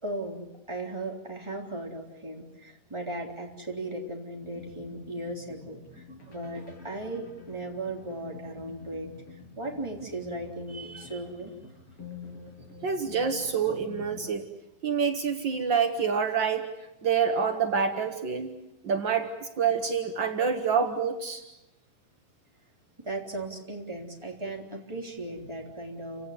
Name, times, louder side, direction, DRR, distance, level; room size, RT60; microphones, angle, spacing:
voice 1, 0.0-11.5 23.0-26.3, right 2 dB, 5° right, 0 dB, 3.3 m, -37 dB
sound 1, 4.4-14.3, left 5 dB, 35° left, 8.8 m, -47 dB
voice 2, 12.8-14.4 14.8-16.7 17.0-18.5 18.8-21.4, right 6 dB, 75° right, 5 dB, 1.0 m, -27 dB
29.5 x 17.5 x 9.8 m, 0.91 s
omnidirectional pair, 4.6 m